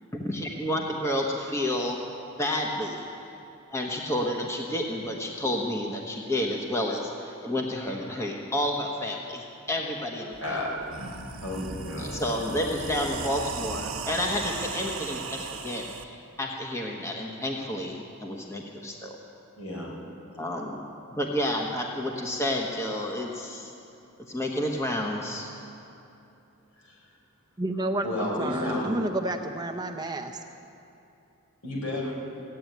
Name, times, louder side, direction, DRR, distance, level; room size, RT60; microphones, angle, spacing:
voice 1, 0.2-2.0 2.4-3.1 3.7-10.6 12.0-19.2 20.4-20.8 21.1-23.7 24.3-25.5, left 1 dB, 15° left, 0 dB, 1.0 m, -30 dB
sound 1, 10.3-10.4 10.8-16.0, right 4 dB, 90° right, 1.1 m, -37 dB
voice 2, 11.4-12.2 19.5-19.9 20.3-20.6 26.7-27.0 28.0-28.8 31.6-32.1, left 1 dB, 75° left, -3 dB, 4.6 m, -32 dB
voice 3, 27.6-30.4, right 1 dB, 20° right, 5 dB, 0.6 m, -30 dB
15.5 x 8.5 x 9.2 m, 2.8 s
head